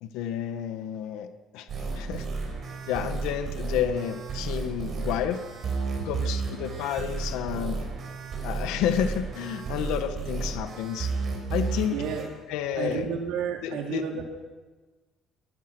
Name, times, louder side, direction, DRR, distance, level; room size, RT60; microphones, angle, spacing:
voice 1, 0.0-1.3 1.5-2.3 2.9-5.4 6.0-7.9 8.4-11.1 11.5-12.0 12.5-13.1 13.6-14.1, left 9 dB, 90° left, 9 dB, 1.5 m, -30 dB
sound 1, 1.7-12.2, right 4 dB, 35° right, 6.2 m, -32 dB
voice 2, 11.9-12.2 12.8-14.2, right 7 dB, 85° right, 1 dB, 4.4 m, -31 dB
23.0 x 19.0 x 6.3 m, 1.3 s
cardioid pair, 155°, 0 cm